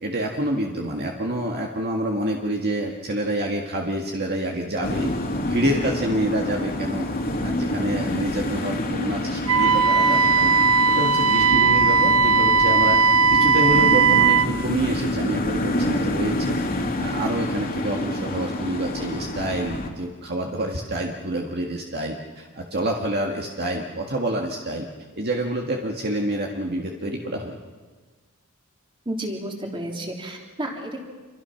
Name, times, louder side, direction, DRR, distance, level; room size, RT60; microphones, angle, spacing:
voice 1, 0.0-5.1 5.4-7.1 7.4-10.6 10.9-13.0 13.3-16.6 17.0-24.9 25.1-27.6, right 1 dB, 45° right, 1 dB, 1.9 m, -27 dB
sound 1, 4.8-19.9, left 1 dB, 45° left, 2.7 m, -28 dB
Wind instrument woodwind instrument, 9.5-14.5, right 4 dB, 65° right, 0.8 m, -18 dB
voice 2, 29.0-31.0, right 1 dB, 25° right, 1 dB, 3.3 m, -31 dB
27.5 x 24.0 x 5.9 m, 1.4 s
head